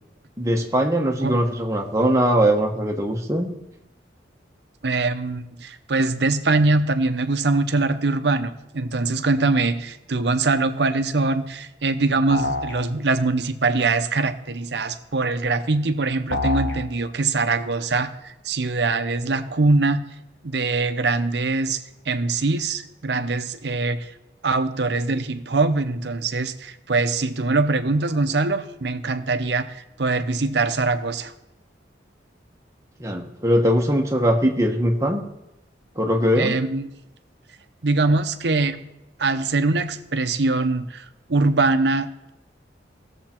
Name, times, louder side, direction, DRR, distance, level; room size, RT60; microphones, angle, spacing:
voice 1, 0.4-3.5 33.0-35.2 36.0-36.6, equal, 15° right, 1 dB, 1.1 m, -21 dB
voice 2, 4.8-20.1 20.4-21.8 22.1-24.1 24.4-31.3 36.4-36.9 37.8-38.8 39.2-42.3, right 3 dB, 70° right, 9 dB, 0.7 m, -23 dB
sound 1, 12.3-12.8 16.3-16.8, left 2 dB, 75° left, 1.7 m, -25 dB
17.5 x 7.1 x 4.4 m, 0.91 s
head